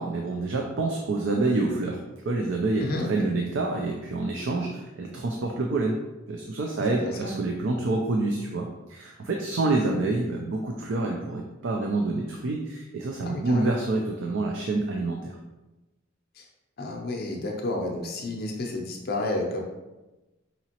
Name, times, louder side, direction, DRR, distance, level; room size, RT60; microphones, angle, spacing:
voice 1, 0.0-2.0 2.3-6.0 6.3-15.3, right 2 dB, 65° right, 1 dB, 0.4 m, -27 dB
voice 2, 2.8-3.3 7.0-7.3 13.2-13.7 16.4-16.5 16.8-19.6, left 2 dB, 50° left, 1 dB, 0.5 m, -31 dB
5.0 x 2.9 x 2.9 m, 1.1 s
head